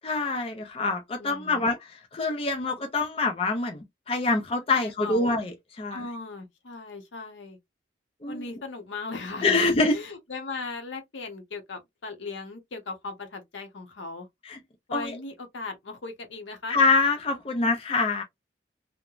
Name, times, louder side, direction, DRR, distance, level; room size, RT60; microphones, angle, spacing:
voice 1, 0.0-1.8 2.1-3.8 4.1-5.5 5.8-6.0 8.2-8.4 9.4-10.0 14.5-14.6 14.9-15.1 16.7-18.2, left 3 dB, 30° left, 0.4 m, -25 dB
voice 2, 1.2-1.7 4.7-5.4 5.9-7.6 8.3-14.3 14.9-16.8, left 3 dB, 90° left, 0.8 m, -38 dB
3.0 x 2.1 x 2.3 m
head